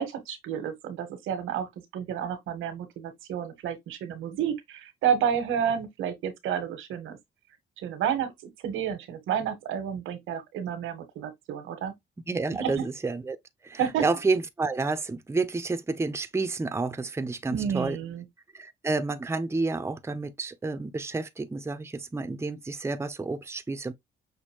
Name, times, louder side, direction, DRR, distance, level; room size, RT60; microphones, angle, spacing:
voice 1, 0.0-7.2 7.8-11.9 12.6-12.8 13.8-14.0 17.5-18.2, right 8 dB, 90° right, 1.3 m, -30 dB
voice 2, 12.3-13.4 13.6-18.0 18.5-23.9, right 3 dB, 15° right, 0.6 m, -30 dB
6.2 x 2.6 x 2.9 m
cardioid pair, 90°, 20 cm